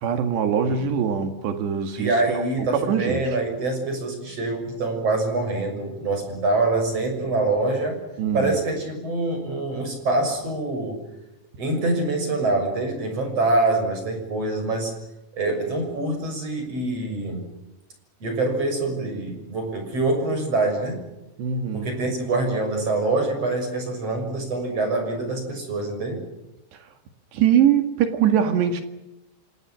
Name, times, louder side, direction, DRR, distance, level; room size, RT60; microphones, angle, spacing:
voice 1, 0.0-2.5 2.8-3.2 8.2-8.6 21.4-21.9 27.3-28.8, right 8 dB, 70° right, 4.0 m, -22 dB
voice 2, 2.0-8.0 8.3-11.0 11.6-14.9 15.3-17.5 18.2-21.0 21.7-26.2, right 2 dB, 35° right, 7.3 m, -25 dB
28.5 x 26.5 x 6.3 m
omnidirectional pair, 5.2 m